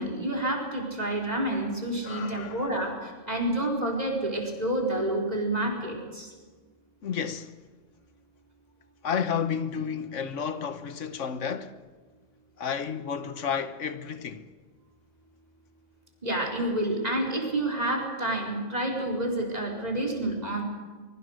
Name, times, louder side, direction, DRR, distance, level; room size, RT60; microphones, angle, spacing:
voice 1, 0.0-2.9 3.3-6.3 16.2-20.6, right 1 dB, 30° right, 4.4 m, -29 dB
voice 2, 2.0-2.7 7.0-7.5 9.0-11.7 12.6-14.4, left 7 dB, 75° left, 1.4 m, -31 dB
24.0 x 21.5 x 6.5 m
omnidirectional pair, 1.3 m